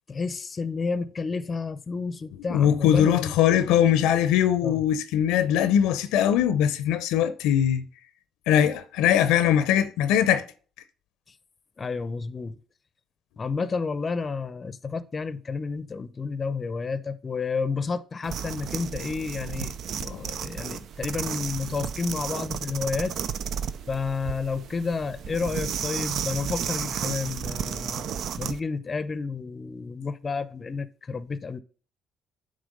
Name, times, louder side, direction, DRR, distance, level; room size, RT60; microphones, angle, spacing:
voice 1, 0.1-3.3 4.6-4.8 11.8-12.6 13.4-23.2 23.9-28.1 28.4-31.6, left 4 dB, 35° left, 0.6 m, -31 dB
voice 2, 2.5-7.8 8.5-10.4 20.1-20.2, left 10 dB, 80° left, 0.6 m, -21 dB
sound 1, 18.2-28.6, right 8 dB, 65° right, 0.5 m, -33 dB
9.1 x 3.4 x 5.3 m
hypercardioid pair, 60°, 0 cm